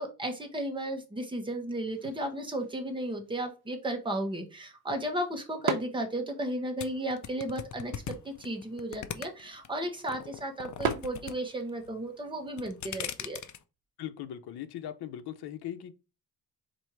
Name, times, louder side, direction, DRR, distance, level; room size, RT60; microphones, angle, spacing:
voice 1, 0.0-7.9 8.2-13.4, right 1 dB, 15° right, 1.0 m, -34 dB
sound 1, 1.9-11.9, right 6 dB, 85° right, 0.8 m, -41 dB
sound 2, 6.8-9.7 10.1-11.3 11.6-12.1 12.5-13.6, left 9 dB, 50° left, 0.5 m, -38 dB
voice 2, 14.0-15.9, left 11 dB, 85° left, 0.7 m, -39 dB
4.4 x 2.6 x 4.5 m
cardioid pair, 140°, 38 cm